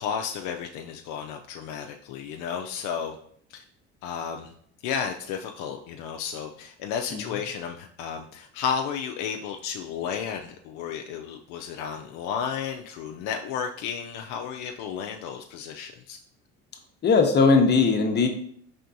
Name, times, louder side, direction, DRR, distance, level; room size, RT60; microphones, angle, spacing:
voice 1, 0.0-3.2 3.5-3.6 4.0-4.5 4.8-16.2, left 7 dB, 70° left, 4 dB, 0.5 m, -33 dB
voice 2, 17.0-18.3, left 4 dB, 35° left, 4 dB, 0.8 m, -19 dB
4.4 x 3.4 x 2.7 m, 0.63 s
hypercardioid pair, 70°, 32 cm